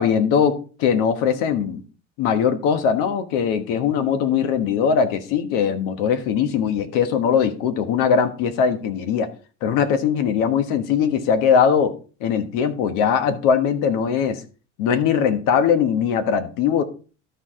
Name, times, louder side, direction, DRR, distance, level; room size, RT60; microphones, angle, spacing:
voice 1, 0.0-1.8 2.2-9.3 9.6-11.9 12.2-14.4 14.8-16.8, left 7 dB, 70° left, 10 dB, 1.3 m, -20 dB
12.5 x 4.8 x 3.7 m, 0.37 s
supercardioid pair, 120°, 34 cm